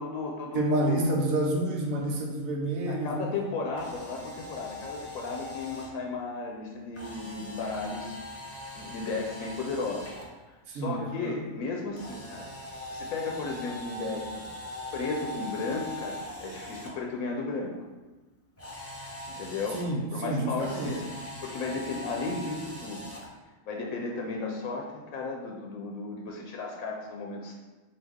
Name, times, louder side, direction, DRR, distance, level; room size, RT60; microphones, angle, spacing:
voice 1, 0.0-1.1 2.9-8.2 8.7-10.2 10.7-12.5 12.9-14.5 14.9-17.7 19.4-19.8 20.1-21.1 21.4-23.1 23.7-27.5, left 3 dB, 75° left, 0 dB, 1.0 m, -34 dB
voice 2, 0.5-3.3 10.7-11.4 19.7-21.0, right 1 dB, 75° right, -1 dB, 1.0 m, -29 dB
Camera, 3.7-5.9 6.9-10.2 11.9-16.9 18.6-19.8 20.6-23.3, left 1 dB, 20° left, 0.4 m, -41 dB
4.6 x 2.4 x 3.5 m, 1.2 s
omnidirectional pair, 1.5 m